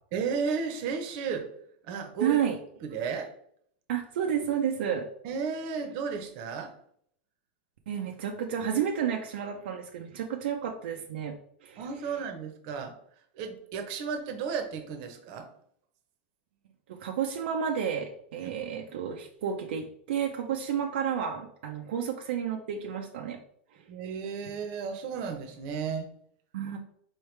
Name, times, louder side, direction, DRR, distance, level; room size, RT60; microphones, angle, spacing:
voice 1, 0.1-1.5 1.9-2.4 2.8-3.3 5.2-6.7 11.8-12.9 13.3-15.5 18.4-18.5 23.9-26.1, right 5 dB, 50° right, 6 dB, 0.8 m, -33 dB
voice 2, 2.2-2.6 3.9-5.1 7.9-11.3 11.6-11.8 16.9-23.4 23.7-23.9 26.5-26.8, right 8 dB, 75° right, 2 dB, 0.5 m, -31 dB
4.5 x 3.1 x 3.2 m, 0.67 s
supercardioid pair, 135°, 6 cm